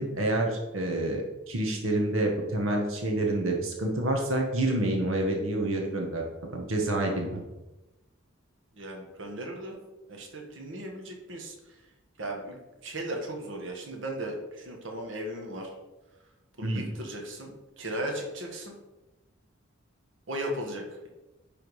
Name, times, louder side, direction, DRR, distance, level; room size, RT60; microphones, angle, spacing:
voice 1, 0.0-6.3 6.5-7.4 16.6-16.8, right 1 dB, 85° right, 1 dB, 1.2 m, -28 dB
voice 2, 8.7-9.8 10.1-11.5 12.2-15.7 16.6-18.7 20.3-21.1, right 1 dB, 65° right, 1 dB, 1.3 m, -36 dB
10.0 x 3.6 x 4.7 m, 1.0 s
head